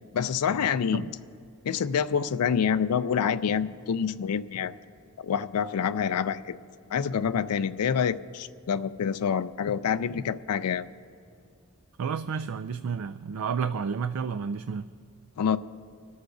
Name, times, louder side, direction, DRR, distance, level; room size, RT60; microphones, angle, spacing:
voice 1, 0.1-1.1 1.6-4.7 5.2-6.6 6.9-10.9 15.4-15.6, left 7 dB, 90° left, 12 dB, 0.4 m, -27 dB
voice 2, 12.0-14.9, right 6 dB, 65° right, 12 dB, 0.4 m, -31 dB
25.0 x 13.0 x 2.6 m, 2.4 s
head